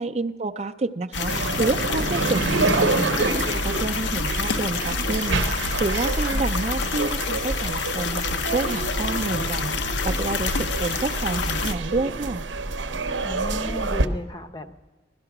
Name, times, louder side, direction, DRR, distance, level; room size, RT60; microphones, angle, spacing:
voice 1, 0.0-12.5, right 3 dB, 35° right, 8 dB, 0.4 m, -29 dB
sound 1, 1.1-11.7, left 4 dB, 75° left, 0.7 m, -28 dB
sound 2, 1.3-14.1, right 3 dB, 85° right, 0.7 m, -28 dB
voice 2, 13.2-14.7, left 1 dB, 25° left, 10 dB, 0.6 m, -34 dB
16.5 x 12.0 x 5.9 m, 1.2 s
head